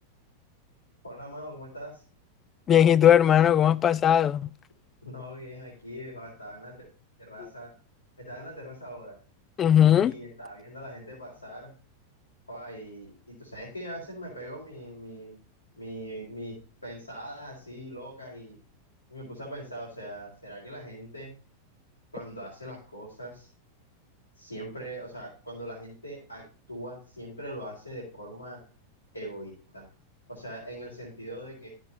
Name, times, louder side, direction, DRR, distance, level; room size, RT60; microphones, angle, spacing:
voice 1, 1.0-2.0 5.0-6.9 7.2-7.7 8.2-9.2 10.0-11.7 12.5-15.3 15.8-18.6 19.1-21.3 22.1-23.5 24.4-28.6 29.1-29.8 30.3-31.7, equal, 85° left, 4.3 m, -41 dB
voice 2, 2.7-4.5 9.6-10.1, left 10 dB, 25° left, 0.4 m, -19 dB
13.0 x 8.0 x 2.7 m
figure-of-eight pair, 90°, 0 cm